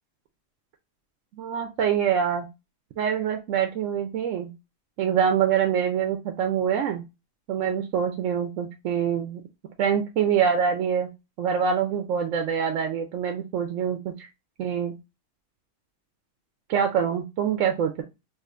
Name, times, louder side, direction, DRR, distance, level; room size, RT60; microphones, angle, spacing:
voice 1, 1.4-2.5 3.0-4.5 5.0-7.0 7.5-9.4 9.8-11.1 11.4-14.3 14.6-14.9 16.7-18.0, right 8 dB, 80° right, 4 dB, 0.9 m, -25 dB
4.8 x 2.5 x 2.3 m, 0.25 s
omnidirectional pair, 1.3 m